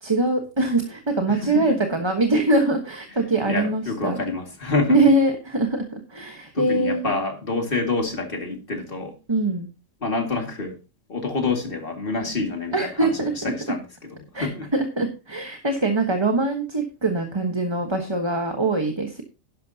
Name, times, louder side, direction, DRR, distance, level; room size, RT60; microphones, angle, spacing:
voice 1, 0.0-4.2 4.9-7.1 9.3-9.7 12.7-13.5 14.3-19.2, right 2 dB, 20° right, 4 dB, 1.2 m, -23 dB
voice 2, 1.3-1.8 3.5-5.0 6.5-9.2 10.0-10.8 11.1-14.7, left 3 dB, 40° left, 3 dB, 2.3 m, -27 dB
11.5 x 11.5 x 2.8 m, 0.31 s
omnidirectional pair, 1.4 m